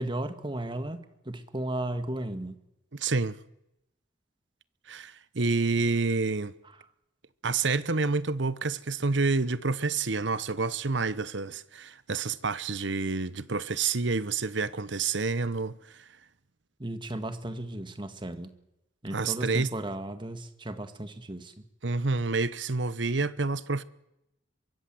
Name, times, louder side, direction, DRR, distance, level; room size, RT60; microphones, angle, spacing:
voice 1, 0.0-2.6 16.8-18.5 19.0-21.7, right 1 dB, 25° right, 1.9 m, -35 dB
voice 2, 2.9-3.4 4.9-6.5 7.4-16.0 19.1-19.7 21.8-23.8, right 4 dB, 70° right, 1.1 m, -28 dB
23.5 x 23.0 x 7.8 m
head